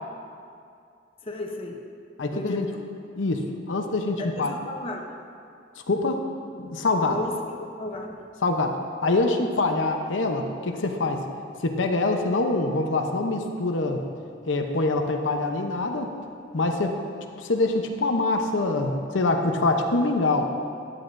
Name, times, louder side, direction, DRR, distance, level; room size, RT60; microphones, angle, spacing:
voice 1, 1.2-1.8 2.3-2.8 4.2-5.1 7.0-8.2, left 2 dB, 30° left, 1 dB, 0.8 m, -34 dB
voice 2, 2.2-2.7 3.2-4.5 5.9-6.2 6.6-7.2 8.4-11.2 11.6-14.0 14.5-16.1 16.5-17.0 17.4-20.5, left 2 dB, 85° left, 4 dB, 0.8 m, -25 dB
14.5 x 11.0 x 2.6 m, 2.4 s
head